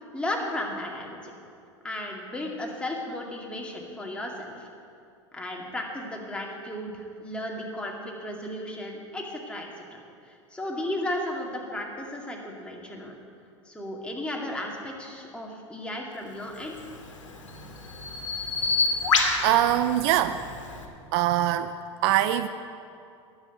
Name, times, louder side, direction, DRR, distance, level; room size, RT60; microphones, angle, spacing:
voice 1, 0.1-1.2 1.8-4.3 4.6-4.7 5.3-10.0 10.5-13.1 13.7-16.7, left 1 dB, 5° left, -1 dB, 2.2 m, -34 dB
Bird vocalization bird call bird song, 16.6-20.9, left 4 dB, 85° left, 1.5 m, -28 dB
voice 2, 19.4-20.4 21.1-21.7 22.0-22.5, right 12 dB, 55° right, 12 dB, 0.5 m, -22 dB
10.5 x 7.8 x 8.0 m, 2.5 s
hypercardioid pair, 90°, 16 cm